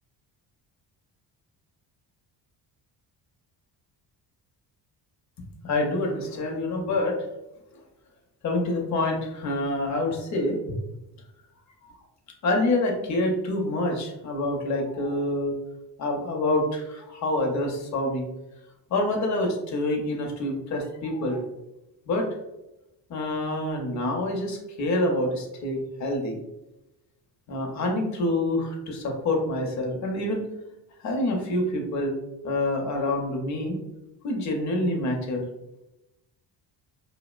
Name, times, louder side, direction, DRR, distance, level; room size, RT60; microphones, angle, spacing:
voice 1, 5.6-7.2 8.4-10.8 11.8-11.9 12.4-15.6 16.0-18.3 18.9-21.4 22.1-22.3 23.1-26.4 27.5-30.5 31.0-32.1 32.4-33.8 34.2-35.4, left 1 dB, 40° left, 1 dB, 0.6 m, -27 dB
2.6 x 2.0 x 2.3 m, 0.93 s
cardioid pair, 145°, 42 cm